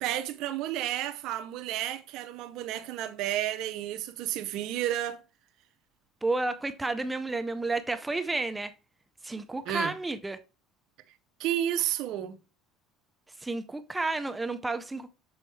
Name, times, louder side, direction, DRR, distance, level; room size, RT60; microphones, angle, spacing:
voice 1, 0.0-5.2 9.7-9.9 11.4-12.4, right 12 dB, 65° right, 0.6 m, -31 dB
voice 2, 6.2-8.7 9.2-10.4 13.4-15.1, right 2 dB, 10° right, 0.5 m, -31 dB
7.0 x 4.2 x 3.2 m
supercardioid pair, 110°, 0 cm